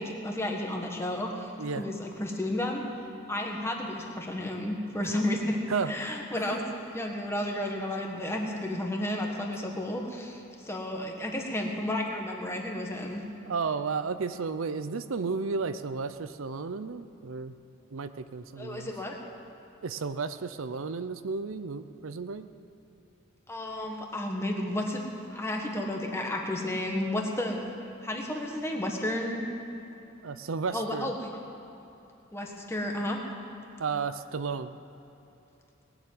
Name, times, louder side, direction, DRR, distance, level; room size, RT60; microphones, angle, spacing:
voice 1, 0.0-1.5 1.8-3.0 3.3-6.6 6.9-13.2 18.6-19.2 23.5-25.0 25.3-27.6 28.0-29.5 30.7-31.3 32.3-33.2, left 1 dB, 15° left, 1 dB, 1.6 m, -32 dB
voice 2, 5.7-6.5 13.5-17.5 17.9-18.9 19.8-22.5 30.2-31.1 33.8-34.8, right 4 dB, 80° right, 11 dB, 0.6 m, -33 dB
19.5 x 7.3 x 9.2 m, 3.0 s
head